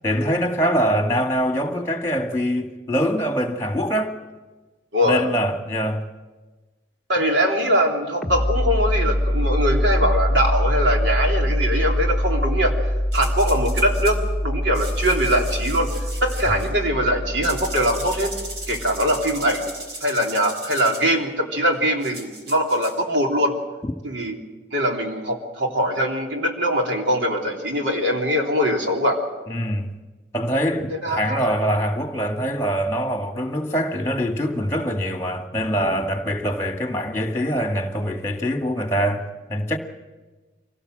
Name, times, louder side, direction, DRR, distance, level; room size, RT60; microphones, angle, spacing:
voice 1, 0.0-4.1 5.0-6.0 16.5-16.6 23.8-23.9 29.5-29.9 30.3-39.8, equal, 15° left, 2.0 m, -24 dB
voice 2, 4.9-5.2 7.1-12.8 13.1-14.2 14.4-15.9 16.2-18.4 18.7-19.7 20.0-23.5 24.0-24.4 24.7-29.2 30.9-31.5, equal, 80° right, 3.3 m, -22 dB
sound 1, 8.2-19.6, equal, ahead, 1.4 m, -24 dB
sound 2, 13.1-14.2 14.7-16.7 17.4-21.1 22.0-23.0, right 2 dB, 60° right, 4.4 m, -37 dB
24.5 x 18.0 x 7.7 m
head